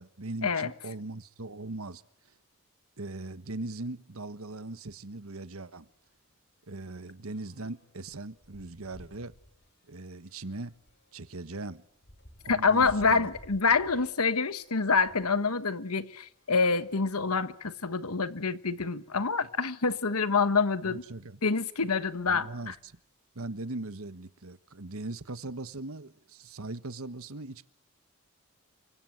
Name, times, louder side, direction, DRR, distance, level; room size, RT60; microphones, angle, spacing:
voice 1, 0.0-2.0 3.0-5.9 6.7-9.4 9.9-10.8 11.1-11.8 12.4-13.3 20.8-21.4 22.3-23.0 23.3-27.7, right 2 dB, 75° right, 1.3 m, -40 dB
sound 1, 4.9-5.1 5.5-5.6 5.9-15.4 16.1-17.5 18.2-18.3 18.5-18.6 20.3-20.4 21.0-21.2 21.7-23.0, equal, 50° left, 4.8 m, -56 dB
voice 2, 12.5-21.0 21.4-22.7, left 4 dB, 90° left, 1.5 m, -27 dB
28.5 x 24.5 x 8.0 m
head